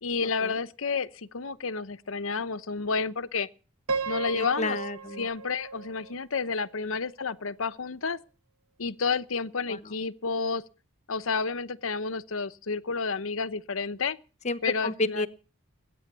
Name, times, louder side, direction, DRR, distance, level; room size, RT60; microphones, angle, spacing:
voice 1, 0.0-3.5 4.1-4.8 5.2-8.2 8.8-10.6 11.1-14.2 14.6-15.3, left 4 dB, 65° left, 0.8 m, -30 dB
Piano, 3.9-6.9, right 4 dB, 85° right, 1.2 m, -35 dB
voice 2, 4.3-5.3 9.7-9.8 14.4-15.3, left 2 dB, 35° left, 1.0 m, -31 dB
20.0 x 9.3 x 6.8 m
head